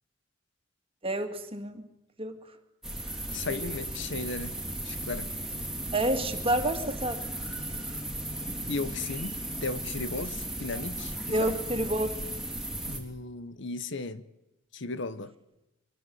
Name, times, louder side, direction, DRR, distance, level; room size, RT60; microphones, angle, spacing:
voice 1, 1.0-1.8 2.2-2.4 3.5-3.6 5.9-7.2 11.3-12.2, right 1 dB, 30° right, 6 dB, 2.5 m, -29 dB
sound 1, 2.8-13.0, right 1 dB, ahead, 3.7 m, -36 dB
voice 2, 3.3-4.6 4.8-5.3 8.7-11.6 12.9-14.3 14.7-15.3, left 3 dB, 65° left, 14 dB, 1.1 m, -36 dB
24.0 x 21.5 x 7.9 m, 0.91 s
head